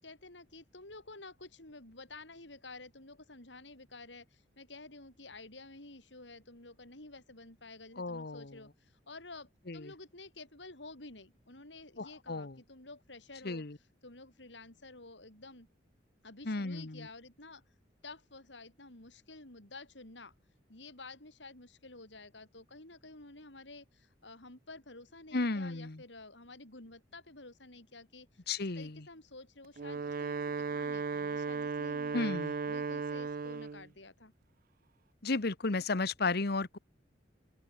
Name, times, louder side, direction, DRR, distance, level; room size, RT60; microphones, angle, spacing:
voice 1, 0.0-13.6 14.0-15.7 16.2-17.6 18.0-20.3 20.7-28.4 28.8-32.3 32.7-34.3, left 3 dB, 80° left, 6.3 m, -51 dB
voice 2, 8.0-8.6 9.7-9.9 12.0-12.6 13.4-13.8 16.4-17.1 25.3-26.0 28.5-29.0 32.1-32.5 35.2-36.8, left 3 dB, 60° left, 1.2 m, -34 dB
Wind instrument woodwind instrument, 29.6-33.9, right 4 dB, 50° right, 0.5 m, -36 dB
open air
head